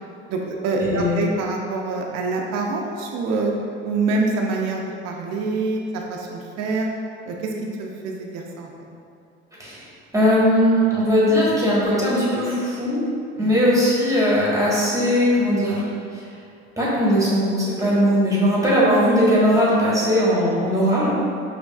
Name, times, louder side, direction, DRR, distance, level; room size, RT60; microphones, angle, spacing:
voice 1, 0.3-3.5 3.8-6.9 7.3-8.7 13.4-13.6, right 3 dB, 50° right, 0 dB, 0.6 m, -26 dB
voice 2, 0.8-1.2 9.6-9.8 10.1-13.0 13.4-15.8 16.8-21.2, equal, 10° right, -7 dB, 1.3 m, -19 dB
5.2 x 2.5 x 2.3 m, 2.4 s
hypercardioid pair, 70°, 33 cm